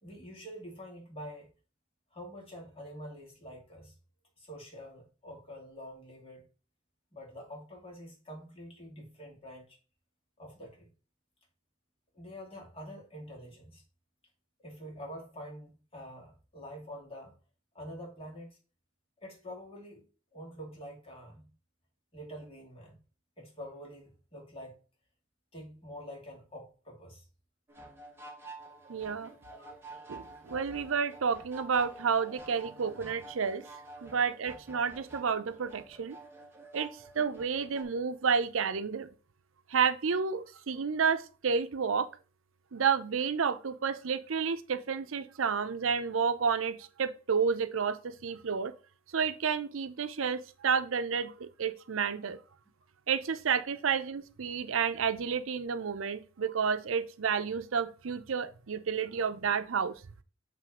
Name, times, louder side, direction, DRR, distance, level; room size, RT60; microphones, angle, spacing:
voice 1, 0.0-1.5 2.1-4.0 4.4-6.4 7.1-9.8 10.4-10.9 12.1-13.8 14.6-17.4 17.7-18.6 19.2-20.1 20.3-21.5 22.1-23.0 23.4-24.8 25.5-27.3 29.5-29.8, equal, 30° left, 2.3 m, -46 dB
sound 1, 27.7-37.8, right 2 dB, 10° right, 1.1 m, -49 dB
voice 2, 28.9-29.3 30.1-33.6 34.0-36.2 36.7-36.9 37.2-39.1 39.7-42.1 42.7-48.7 49.1-52.4 53.1-59.9, right 6 dB, 90° right, 0.6 m, -30 dB
7.7 x 3.3 x 4.9 m
head